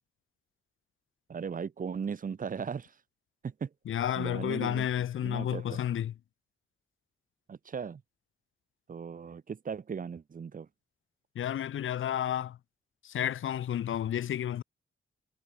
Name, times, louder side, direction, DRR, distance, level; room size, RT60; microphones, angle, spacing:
voice 1, 1.3-3.0 3.4-3.7 4.2-4.9 5.2-5.8 7.5-8.0 8.9-10.7, right 6 dB, 40° right, 2.1 m, -37 dB
voice 2, 3.9-6.1 11.3-12.6 13.0-14.6, left 10 dB, 75° left, 1.0 m, -31 dB
wide cardioid pair, 170°, 20 cm